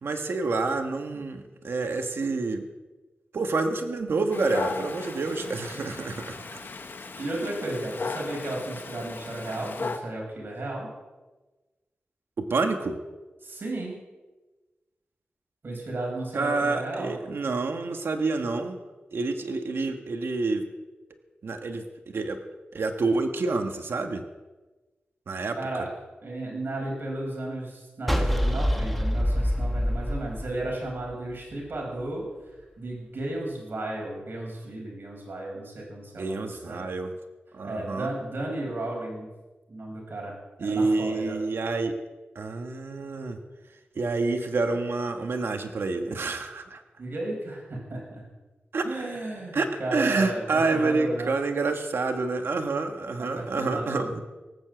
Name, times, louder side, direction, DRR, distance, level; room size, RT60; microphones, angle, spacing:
voice 1, 0.0-2.6 3.3-6.4 12.5-13.0 16.3-18.8 19.1-20.6 21.4-21.8 22.1-22.4 22.7-24.2 25.3-25.5 36.2-37.1 37.5-38.1 40.6-41.9 42.3-43.4 44.0-46.8 48.7-48.8 49.5-49.7 49.9-54.2, right 3 dB, 80° right, 5 dB, 1.4 m, -28 dB
Dog, 4.3-10.0, left 4 dB, 60° left, 1.3 m, -36 dB
voice 2, 7.2-10.9 13.4-14.0 15.6-17.1 25.5-25.9 26.2-32.2 32.8-36.9 37.6-39.3 39.7-40.3 40.6-41.4 47.0-48.3 48.8-51.3 53.2-54.1, right 2 dB, 60° right, -1 dB, 5.3 m, -34 dB
sound 1, 28.1-31.3, equal, ahead, 1.4 m, -26 dB
18.0 x 7.3 x 7.8 m, 1.2 s
wide cardioid pair, 85°, 4 cm